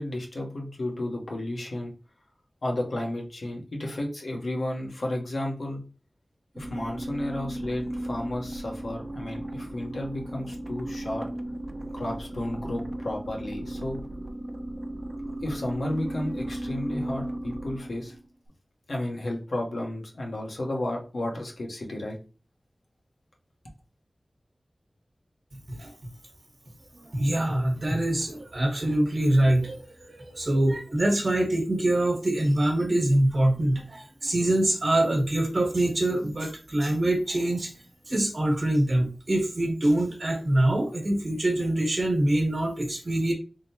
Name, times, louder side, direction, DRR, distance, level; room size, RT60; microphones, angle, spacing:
voice 1, 0.0-1.9 2.6-5.8 6.6-11.3 11.9-14.0 15.4-18.1 18.9-22.2, left 1 dB, 80° left, -1 dB, 1.0 m, -32 dB
sound 1, 6.5-18.3, right 1 dB, 30° right, 0.5 m, -36 dB
voice 2, 27.0-37.7 38.1-43.3, right 1 dB, 55° right, 2 dB, 1.2 m, -24 dB
3.7 x 3.2 x 2.8 m, 0.34 s
wide cardioid pair, 75°, 0 cm